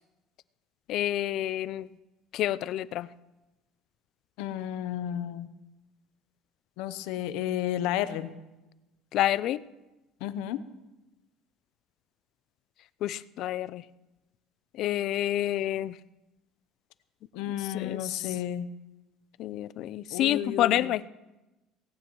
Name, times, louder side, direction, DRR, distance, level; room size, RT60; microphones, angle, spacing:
voice 1, 0.9-1.9 2.3-3.1 9.1-9.6 13.0-13.8 14.8-16.0 17.5-18.3 19.4-21.0, left 13 dB, 55° left, 17 dB, 0.4 m, -28 dB
voice 2, 4.4-5.5 6.8-8.3 10.2-10.6 17.3-18.7 20.1-20.9, left 11 dB, 80° left, 13 dB, 0.8 m, -32 dB
18.0 x 16.5 x 3.1 m, 1.0 s
cardioid pair, 140°, 0 cm